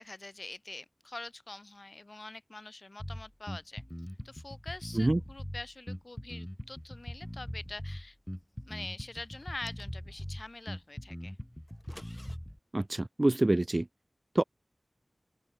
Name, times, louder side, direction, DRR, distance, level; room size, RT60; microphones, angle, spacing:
voice 1, 0.0-3.8 4.2-8.2 8.6-11.4, left 2 dB, 55° left, 3.1 m, -45 dB
Bass guitar, 3.0-12.6, equal, 10° left, 1.6 m, -41 dB
sound 1, 9.4-10.3 11.7-12.4, left 1 dB, 30° left, 1.6 m, -53 dB
voice 2, 12.7-13.8 14.4-14.5, right 2 dB, 40° right, 0.3 m, -26 dB
wide cardioid pair, 60°, 0 cm